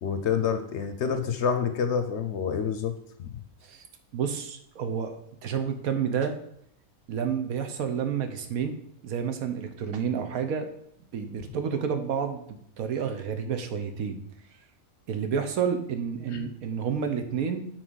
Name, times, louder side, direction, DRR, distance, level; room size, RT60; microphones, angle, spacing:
voice 1, 0.0-2.9 3.2-3.4 16.3-16.5, left 7 dB, 60° left, 8 dB, 0.8 m, -28 dB
voice 2, 4.1-5.1 5.4-6.4 7.1-8.8 9.0-10.7 11.1-12.4 12.8-14.2 15.1-17.7, right 7 dB, 80° right, 7 dB, 1.3 m, -29 dB
6.1 x 4.1 x 6.2 m, 0.70 s
omnidirectional pair, 1.5 m